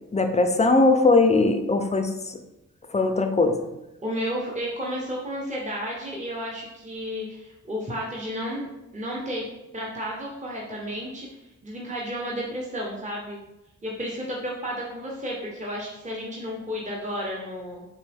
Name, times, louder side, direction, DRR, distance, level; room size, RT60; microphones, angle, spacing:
voice 1, 0.1-2.1 2.9-3.7, left 3 dB, 20° left, 6 dB, 0.5 m, -20 dB
voice 2, 4.0-8.7 8.9-9.5 9.7-11.3 11.6-13.4 13.8-17.9, equal, 20° right, -4 dB, 1.0 m, -32 dB
4.3 x 3.1 x 3.4 m, 0.94 s
cardioid pair, 55°, 33 cm